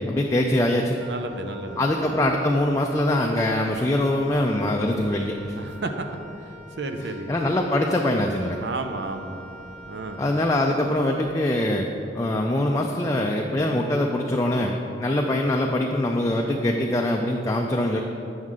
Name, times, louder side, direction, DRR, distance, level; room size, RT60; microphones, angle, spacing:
voice 1, 0.0-1.0 1.8-5.3 7.3-8.6 10.2-11.9 12.1-18.0, left 1 dB, 20° left, 1 dB, 0.4 m, -23 dB
Wind instrument woodwind instrument, 1.0-11.4, right 1 dB, 45° right, 1.4 m, -46 dB
voice 2, 1.0-1.9 5.6-5.9 6.5-7.3 8.6-9.5 9.8-10.2, right 3 dB, 75° right, 6 dB, 0.6 m, -33 dB
9.2 x 6.3 x 3.7 m, 2.7 s
head